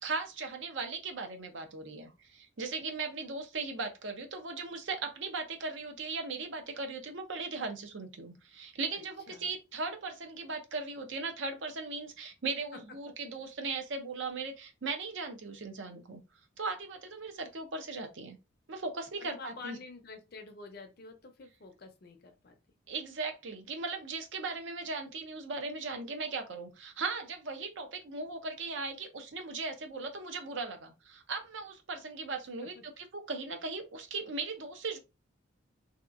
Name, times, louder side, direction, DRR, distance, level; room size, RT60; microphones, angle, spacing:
voice 1, 0.0-16.2 16.6-18.4 18.7-19.8 22.9-35.0, right 4 dB, 70° right, 0.6 m, -38 dB
voice 2, 19.2-22.6 32.6-32.8, left 3 dB, 50° left, 0.5 m, -48 dB
2.8 x 2.2 x 2.5 m
head